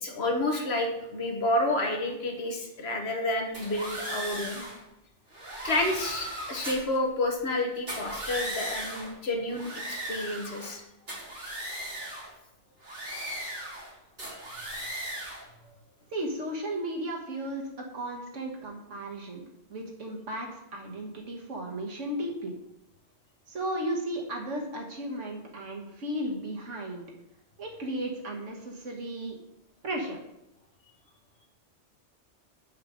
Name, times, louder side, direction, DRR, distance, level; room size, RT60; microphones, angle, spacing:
voice 1, 0.0-4.6 5.6-10.8, left 1 dB, 60° left, 2 dB, 1.3 m, -30 dB
sound 1, 3.5-4.8 5.3-7.0 7.8-9.1 9.5-10.8 11.1-12.3 12.8-13.9 14.2-15.4, right 1 dB, 55° right, 2.5 m, -37 dB
voice 2, 16.1-22.5 23.5-27.0 27.6-29.4 29.8-30.2, right 1 dB, 85° right, -1 dB, 1.7 m, -35 dB
5.5 x 5.1 x 6.1 m, 0.87 s
omnidirectional pair, 1.2 m